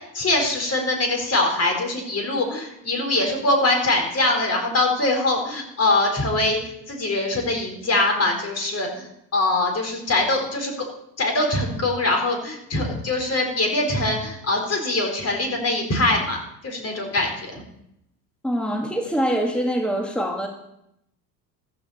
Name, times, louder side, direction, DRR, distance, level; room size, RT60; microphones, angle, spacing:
voice 1, 0.1-6.6 6.9-10.7 11.2-16.4 16.6-17.6, left 2 dB, 30° left, 3 dB, 4.5 m, -23 dB
voice 2, 18.4-20.5, equal, ahead, 3 dB, 1.9 m, -24 dB
14.5 x 13.0 x 4.3 m, 0.79 s
figure-of-eight pair, 70°, 50 cm